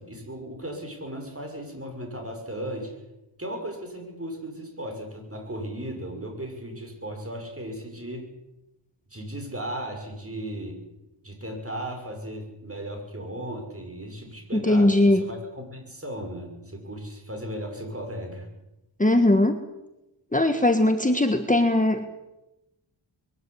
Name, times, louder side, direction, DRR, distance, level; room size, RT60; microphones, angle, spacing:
voice 1, 0.0-3.0 3.4-8.3 9.1-10.8 11.2-18.5, right 1 dB, 30° right, 3 dB, 6.7 m, -36 dB
voice 2, 14.5-15.3 19.0-19.6 20.3-22.2, left 1 dB, 15° left, 7 dB, 1.6 m, -20 dB
22.0 x 14.0 x 9.9 m, 0.95 s
wide cardioid pair, 65°, 49 cm